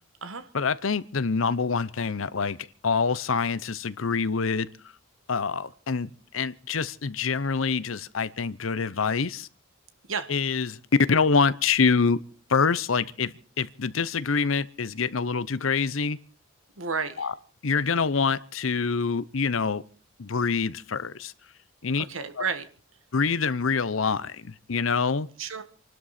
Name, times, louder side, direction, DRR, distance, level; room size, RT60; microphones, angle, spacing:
voice 1, 0.5-4.7 5.3-9.5 10.3-10.8 11.1-12.2 12.5-16.2 17.2-17.3 17.6-19.8 20.2-21.3 21.8-22.0 22.4-22.5 23.1-25.3, left 5 dB, 85° left, 0.8 m, -26 dB
voice 2, 16.8-17.3 22.0-22.6 25.4-25.6, right 5 dB, 85° right, 1.6 m, -31 dB
27.5 x 12.5 x 4.3 m
head